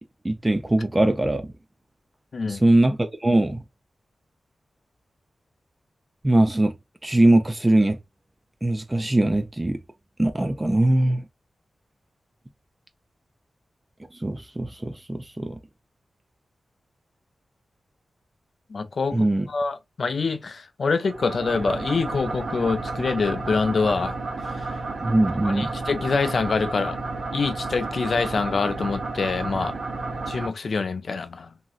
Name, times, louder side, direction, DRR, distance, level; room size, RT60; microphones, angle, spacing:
voice 1, 0.2-1.5 2.5-3.6 6.2-6.7 7.0-8.0 8.6-9.8 10.2-11.3 14.2-15.6 19.1-19.5 25.0-25.7, right 1 dB, 20° right, 0.4 m, -21 dB
voice 2, 18.7-24.2 25.4-27.0 27.3-29.7 30.3-31.5, left 4 dB, 60° left, 0.4 m, -25 dB
sound 1, 21.1-30.5, right 3 dB, 85° right, 1.1 m, -32 dB
2.9 x 2.6 x 2.3 m
wide cardioid pair, 125°, 0 cm